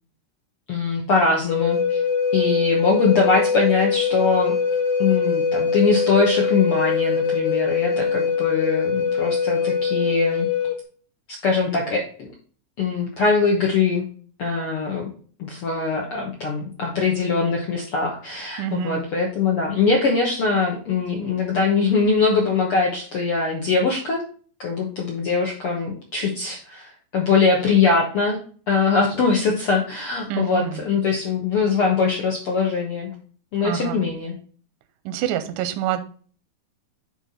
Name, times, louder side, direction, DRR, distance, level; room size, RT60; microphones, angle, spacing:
voice 1, 0.7-2.0 2.3-4.5 5.0-10.5 11.3-12.3 12.8-14.0 14.4-15.1 15.4-24.2 24.6-26.9 27.1-28.4 28.7-33.1 33.5-34.3, left 4 dB, 65° left, -1 dB, 1.4 m, -22 dB
Wind instrument woodwind instrument, 1.5-10.8, left 5 dB, 85° left, 3.1 m, -22 dB
voice 2, 18.6-19.0 30.3-30.8 33.6-34.1 35.1-36.0, right 10 dB, 80° right, 10 dB, 2.1 m, -27 dB
9.5 x 3.5 x 4.1 m, 0.43 s
omnidirectional pair, 4.2 m